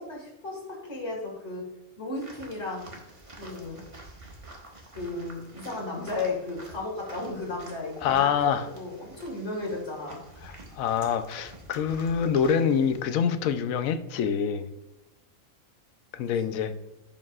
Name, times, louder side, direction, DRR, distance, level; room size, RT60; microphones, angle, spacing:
voice 1, 0.0-1.7 2.0-2.9 3.4-3.8 4.9-10.2 16.4-16.7, left 2 dB, 55° left, -2 dB, 2.1 m, -35 dB
sound 1, 2.1-13.0, right 2 dB, 25° right, 1.1 m, -48 dB
voice 2, 8.0-8.6 10.7-14.7 16.1-16.7, left 7 dB, 85° left, 11 dB, 1.0 m, -25 dB
10.5 x 5.3 x 2.4 m, 0.95 s
omnidirectional pair, 1.4 m